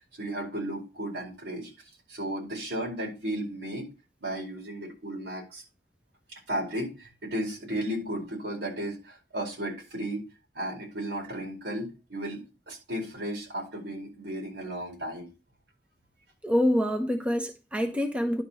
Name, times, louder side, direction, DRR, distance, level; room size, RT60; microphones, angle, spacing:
voice 1, 0.0-1.7 2.1-3.9 4.2-5.6 6.3-10.2 10.5-15.3, right 1 dB, 80° right, 4.6 m, -34 dB
voice 2, 16.4-18.4, equal, 5° right, 0.8 m, -26 dB
11.0 x 5.9 x 4.4 m
head